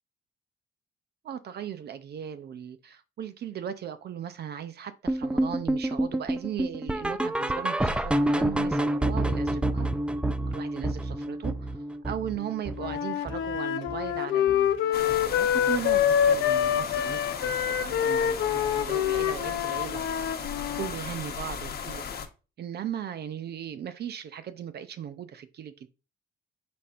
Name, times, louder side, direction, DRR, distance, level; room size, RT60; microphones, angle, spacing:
voice 1, 1.2-9.9 10.5-11.7 12.0-20.0 20.8-22.2 22.6-25.9, right 9 dB, 55° right, 0.5 m, -37 dB
sound 1, 5.1-14.2 14.5-14.8 15.1-15.2 15.7-15.8 16.3-16.4, right 1 dB, 5° right, 0.4 m, -28 dB
Wind instrument woodwind instrument, 12.8-20.9, left 9 dB, 80° left, 0.6 m, -26 dB
sound 2, 14.9-22.3, left 6 dB, 50° left, 1.0 m, -36 dB
5.1 x 4.2 x 2.4 m
cardioid pair, 90°, 20 cm